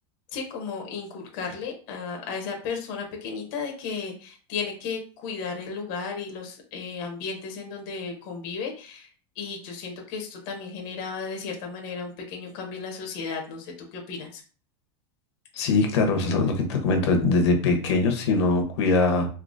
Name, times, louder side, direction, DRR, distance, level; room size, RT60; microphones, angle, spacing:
voice 1, 0.3-9.1 9.4-14.4, left 5 dB, 45° left, 2 dB, 0.9 m, -34 dB
voice 2, 15.5-19.3, left 3 dB, 70° left, 4 dB, 1.0 m, -22 dB
3.8 x 2.7 x 2.6 m, 0.39 s
supercardioid pair, 170°, 15 cm